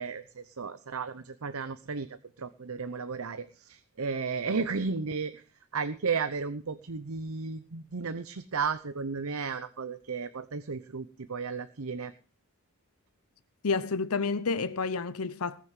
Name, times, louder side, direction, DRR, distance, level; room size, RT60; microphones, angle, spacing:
voice 1, 0.0-2.1 2.4-5.4 5.7-12.1, right 5 dB, 75° right, 0.8 m, -34 dB
voice 2, 13.6-15.6, left 4 dB, 85° left, 0.8 m, -30 dB
19.5 x 6.8 x 7.4 m
head